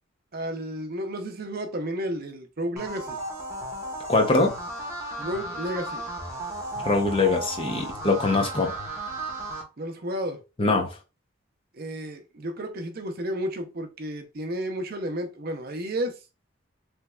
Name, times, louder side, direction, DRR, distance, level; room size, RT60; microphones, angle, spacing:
voice 1, 0.3-3.2 5.2-6.1 9.8-10.4 11.7-16.2, right 1 dB, 45° right, 0.6 m, -32 dB
sound 1, 2.8-9.6, right 1 dB, 15° right, 0.8 m, -35 dB
voice 2, 4.1-4.5 6.8-8.7 10.6-11.0, left 3 dB, 25° left, 0.6 m, -22 dB
3.4 x 3.1 x 2.2 m
head